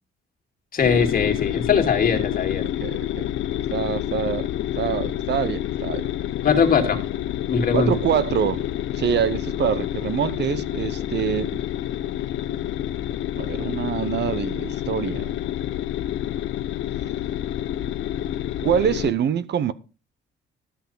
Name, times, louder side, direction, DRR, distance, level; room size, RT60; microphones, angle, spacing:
voice 1, 0.7-2.7 6.4-7.0 7.5-7.9, left 6 dB, 45° left, 2.3 m, -20 dB
sound 1, 0.8-19.1, left 12 dB, 75° left, 0.6 m, -28 dB
voice 2, 2.8-3.2 3.7-4.5 4.8-6.1 7.7-8.7 8.9-11.6 13.4-15.3 18.6-19.7, right 8 dB, 60° right, 0.7 m, -25 dB
13.0 x 5.7 x 5.5 m
cardioid pair, 90°, 20 cm